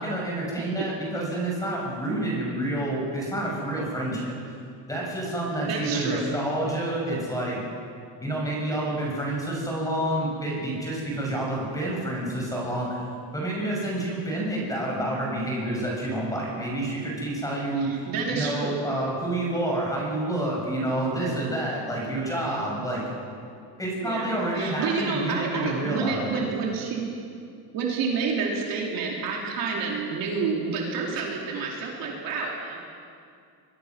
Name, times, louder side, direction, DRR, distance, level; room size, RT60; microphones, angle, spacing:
voice 1, 0.0-4.5 4.9-7.6 8.2-13.0 13.3-18.0 18.3-23.0 23.8-26.4, right 1 dB, 10° left, -2 dB, 6.6 m, -28 dB
voice 2, 5.6-6.3 17.8-18.8 24.0-24.3 24.5-27.1 27.7-32.8, right 5 dB, 50° right, -2 dB, 4.2 m, -29 dB
25.0 x 22.5 x 6.2 m, 2.3 s
cardioid pair, 160°, 42 cm